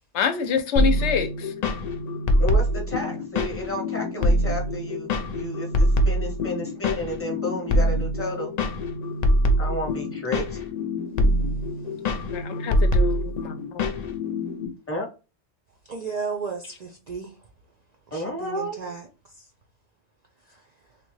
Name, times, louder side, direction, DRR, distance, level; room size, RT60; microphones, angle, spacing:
voice 1, 0.1-1.5 12.3-13.5, left 6 dB, 80° left, 0.9 m, -26 dB
sound 1, 0.8-14.7, equal, 50° left, 0.5 m, -24 dB
voice 2, 2.4-8.5 9.6-10.7 14.9-15.1 18.1-18.8, equal, 15° left, 0.8 m, -31 dB
voice 3, 11.7-12.2 15.9-17.5 18.1-19.5 20.4-21.0, right 5 dB, 55° right, 0.5 m, -36 dB
3.2 x 2.2 x 3.0 m
omnidirectional pair, 1.1 m